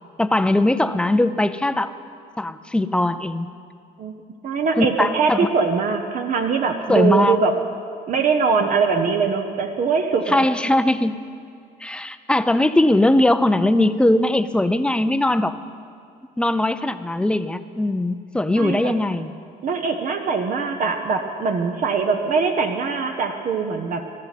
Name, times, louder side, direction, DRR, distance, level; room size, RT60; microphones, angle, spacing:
voice 1, 0.2-1.9 2.4-3.5 4.8-5.5 6.9-7.4 10.3-11.2 11.8-15.6 16.4-19.3, left 1 dB, 5° left, 12 dB, 0.5 m, -20 dB
voice 2, 4.4-7.6 8.1-10.4 18.6-18.9 19.6-24.1, right 5 dB, 50° right, 4 dB, 0.9 m, -22 dB
20.0 x 13.5 x 4.2 m, 2.3 s
cardioid pair, 110°, 17 cm